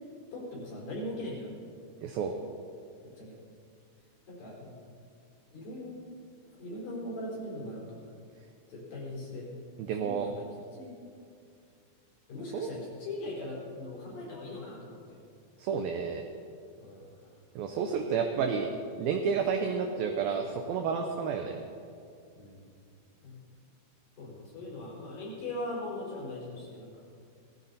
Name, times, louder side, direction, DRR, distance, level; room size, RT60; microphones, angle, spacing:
voice 1, 0.3-1.5 3.0-3.4 4.3-4.8 5.5-6.0 6.5-8.0 8.7-9.5 10.0-10.5 10.7-11.0 12.3-15.2 16.8-17.2 18.0-18.1 20.3-20.4 22.4-22.6 23.2-23.4 24.2-27.1, left 1 dB, 50° left, -4 dB, 5.5 m, -40 dB
voice 2, 2.0-2.3 9.8-10.3 12.5-12.7 15.6-16.2 17.6-18.7 19.0-21.6, right 6 dB, 85° right, 4 dB, 2.1 m, -30 dB
18.5 x 14.0 x 4.1 m, 2.4 s
omnidirectional pair, 5.2 m